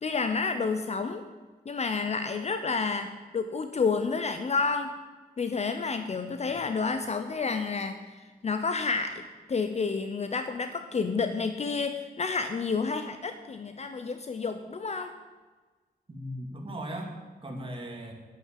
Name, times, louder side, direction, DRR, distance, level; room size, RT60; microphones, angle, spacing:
voice 1, 0.0-1.2 1.7-4.9 5.4-15.1, left 4 dB, 40° left, 8 dB, 0.7 m, -30 dB
voice 2, 16.1-18.1, equal, 35° right, 2 dB, 2.4 m, -38 dB
11.0 x 10.5 x 7.6 m, 1.3 s
wide cardioid pair, 180°, 17 cm